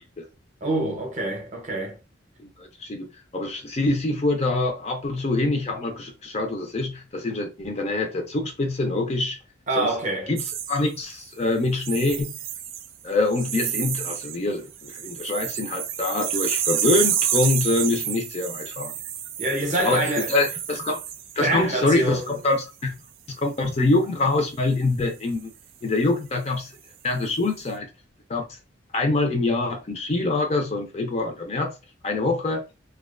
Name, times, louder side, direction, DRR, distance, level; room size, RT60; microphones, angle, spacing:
voice 1, 0.6-2.0 9.7-10.3 19.4-20.4 21.4-22.4, right 2 dB, 40° right, 0.6 m, -26 dB
voice 2, 2.4-9.4 9.8-9.9 10.3-12.3 13.0-18.9 19.8-21.0 21.4-23.0 23.3-25.5 25.8-26.7 27.0-27.9 28.3-28.6 28.9-31.7 32.0-32.6, left 2 dB, 35° left, 0.4 m, -25 dB
sound 1, 10.4-11.3 11.8-13.0 13.3-14.4 14.7-21.5 22.0-22.3, right 10 dB, 80° right, 0.3 m, -29 dB
2.4 x 2.2 x 2.3 m
head